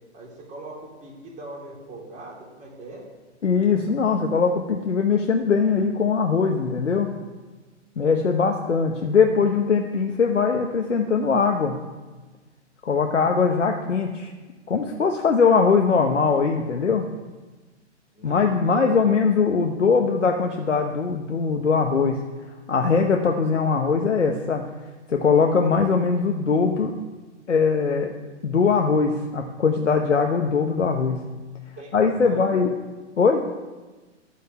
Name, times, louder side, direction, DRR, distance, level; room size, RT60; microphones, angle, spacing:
voice 1, 0.1-3.1 18.1-18.9 31.8-32.4, right 2 dB, 20° right, -2 dB, 3.2 m, -41 dB
voice 2, 3.4-7.1 8.0-11.8 12.8-14.3 14.7-17.1 18.2-22.2 22.7-24.6 25.1-26.9 27.5-28.1 28.4-31.2 31.9-32.7 33.2-33.4, left 5 dB, 80° left, 3 dB, 1.1 m, -21 dB
12.5 x 5.2 x 7.7 m, 1.3 s
figure-of-eight pair, 115°, 36 cm